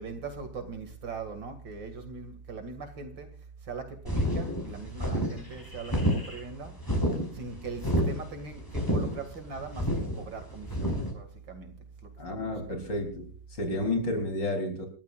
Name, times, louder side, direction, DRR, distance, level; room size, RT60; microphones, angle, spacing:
voice 1, 0.0-6.8 7.3-12.9 13.7-14.0, right 4 dB, 65° right, 3.0 m, -41 dB
sound 1, 4.1-11.1, equal, 10° left, 5.3 m, -29 dB
voice 2, 12.2-14.9, left 1 dB, 60° left, 4.2 m, -31 dB
28.0 x 14.0 x 2.5 m
omnidirectional pair, 2.3 m